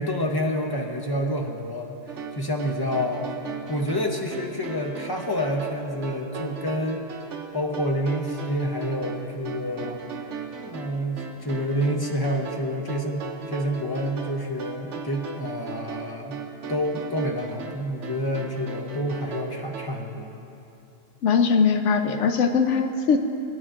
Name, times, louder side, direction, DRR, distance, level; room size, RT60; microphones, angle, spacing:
voice 1, 0.0-2.0 2.4-3.3 3.7-7.0 7.5-10.0 10.7-16.4 16.7-20.3, equal, 30° left, 2 dB, 0.5 m, -28 dB
sound 1, 2.1-19.9, right 5 dB, 70° right, 1.0 m, -37 dB
voice 2, 21.2-23.2, left 5 dB, 70° left, 6 dB, 0.9 m, -21 dB
17.0 x 9.2 x 2.4 m, 2.7 s
omnidirectional pair, 1.3 m